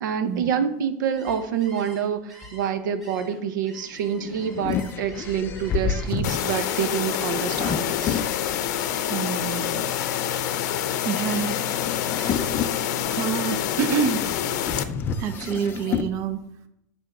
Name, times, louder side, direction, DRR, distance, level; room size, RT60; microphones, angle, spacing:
voice 1, 0.0-8.2, right 8 dB, 85° right, 9 dB, 0.8 m, -27 dB
Gull seagull, 1.0-7.8 8.1-10.8 11.2-11.7 12.0-12.5 12.9-14.3, equal, ahead, 1.5 m, -49 dB
sound 1, 3.9-8.9 9.5-16.1, left 6 dB, 20° left, 0.4 m, -31 dB
sound 2, 6.2-14.8, left 10 dB, 60° left, 0.6 m, -27 dB
voice 2, 9.1-9.8 11.0-11.6 12.1-12.6 13.1-14.4 15.2-16.4, right 7 dB, 30° right, 8 dB, 0.5 m, -28 dB
8.1 x 3.7 x 6.1 m, 0.82 s
supercardioid pair, 165°, 10 cm